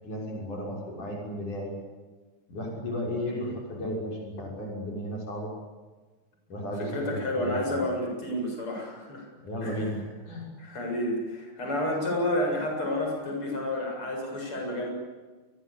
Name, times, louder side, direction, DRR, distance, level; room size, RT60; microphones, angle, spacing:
voice 1, 0.0-1.7 2.5-5.5 6.5-7.9 9.4-10.4, equal, 70° left, -1 dB, 7.9 m, -34 dB
voice 2, 6.8-9.3 9.6-9.9 10.6-14.9, left 1 dB, 40° left, 1 dB, 8.2 m, -30 dB
29.5 x 22.5 x 8.5 m, 1.3 s
omnidirectional pair, 3.7 m